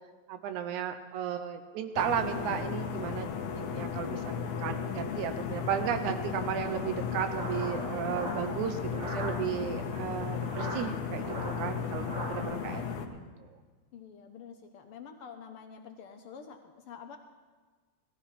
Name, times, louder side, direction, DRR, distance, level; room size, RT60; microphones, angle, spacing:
voice 1, 0.3-3.3 3.5-12.8, right 9 dB, 90° right, 8 dB, 2.4 m, -34 dB
sound 1, 2.0-13.1, left 7 dB, 90° left, 2.4 m, -35 dB
sound 2, 6.7-9.3 10.4-12.4, right 1 dB, 65° right, 4.8 m, -40 dB
voice 2, 13.9-17.2, left 6 dB, 70° left, 5 dB, 1.4 m, -47 dB
17.5 x 14.5 x 4.3 m, 1.4 s
omnidirectional pair, 3.4 m